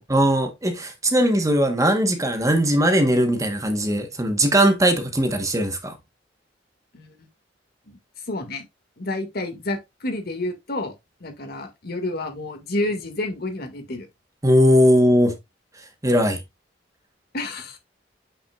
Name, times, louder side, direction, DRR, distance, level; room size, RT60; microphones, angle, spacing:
voice 1, 0.1-6.0 14.4-15.3 16.0-16.4, equal, 20° right, 1.2 m, -19 dB
voice 2, 8.3-8.6 9.0-10.9 11.2-14.1 17.3-17.8, left 2 dB, 60° left, 2.0 m, -29 dB
8.2 x 6.1 x 2.4 m
head